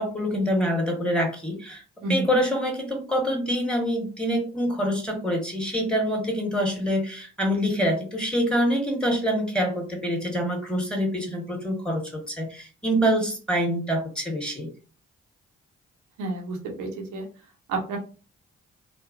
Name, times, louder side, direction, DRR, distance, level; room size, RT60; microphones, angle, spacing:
voice 1, 0.0-1.8 2.1-14.7, equal, 5° left, 0 dB, 1.4 m, -26 dB
voice 2, 16.2-17.2 17.7-18.0, right 3 dB, 85° right, 1 dB, 0.8 m, -29 dB
2.9 x 2.1 x 2.6 m, 0.36 s
supercardioid pair, 45°, 30 cm